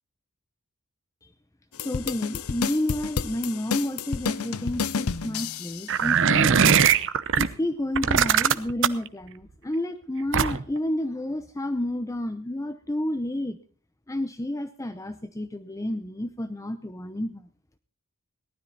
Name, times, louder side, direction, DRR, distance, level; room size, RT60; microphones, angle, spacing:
sound 1, 1.7-5.9, left 5 dB, 80° left, 0.7 m, -30 dB
voice 1, 1.8-6.8 7.4-13.6 14.1-17.4, left 1 dB, 15° left, 11 dB, 0.7 m, -30 dB
sound 2, 5.9-7.5 7.9-9.1 10.3-10.8, right 7 dB, 60° right, 0.8 m, -20 dB
18.0 x 12.5 x 4.1 m, 0.42 s
head